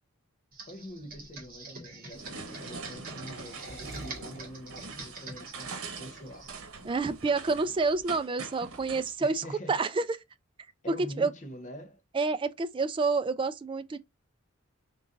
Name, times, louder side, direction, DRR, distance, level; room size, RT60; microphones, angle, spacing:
Computer keyboard, 0.5-6.6, right 3 dB, 45° right, 1.7 m, -45 dB
voice 1, 0.6-6.5 9.2-9.8 10.8-12.0, equal, 35° left, 0.7 m, -45 dB
sound 1, 2.0-7.2, right 2 dB, 65° right, 1.9 m, -47 dB
sound 2, 2.1-9.1, right 4 dB, 90° right, 1.1 m, -44 dB
voice 2, 6.8-10.0 11.2-11.3 12.1-14.0, right 4 dB, 25° right, 0.3 m, -28 dB
3.9 x 3.7 x 2.6 m
head